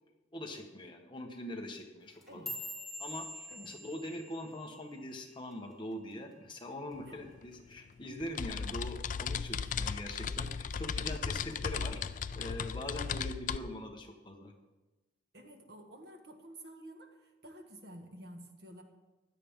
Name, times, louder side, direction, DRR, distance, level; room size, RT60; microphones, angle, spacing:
voice 1, 0.3-2.5 3.0-14.5, left 1 dB, 25° left, 2 dB, 1.3 m, -43 dB
sound 1, 2.0-6.4 6.7-7.1 7.5-7.9 8.3-8.5 9.1-9.5 9.9-10.7 11.1-11.5 12.3-12.4, left 1 dB, ahead, 2.0 m, -46 dB
sound 2, 7.0-7.1 7.3-13.6, left 6 dB, 40° left, 0.3 m, -36 dB
voice 2, 7.0-7.3 9.3-9.7 10.8-11.2 15.3-18.8, right 1 dB, 55° right, 3 dB, 1.6 m, -51 dB
16.0 x 11.5 x 3.7 m, 1.1 s
head